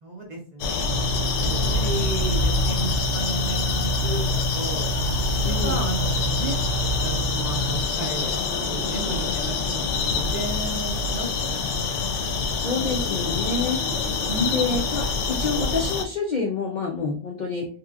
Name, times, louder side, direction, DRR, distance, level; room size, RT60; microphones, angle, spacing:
voice 1, 0.0-4.9 5.6-6.6 7.0-9.8 10.1-12.1 14.3-14.8, right 1 dB, 45° right, -2 dB, 0.6 m, -33 dB
sound 1, 0.6-16.0, left 4 dB, 75° left, 0.9 m, -26 dB
sound 2, 0.9-7.8, right 2 dB, 70° right, 0.9 m, -28 dB
voice 2, 1.4-1.9 5.4-5.8 12.6-13.8 14.5-17.7, left 4 dB, 55° left, -1 dB, 0.5 m, -28 dB
2.9 x 2.9 x 2.4 m, 0.40 s
omnidirectional pair, 1.3 m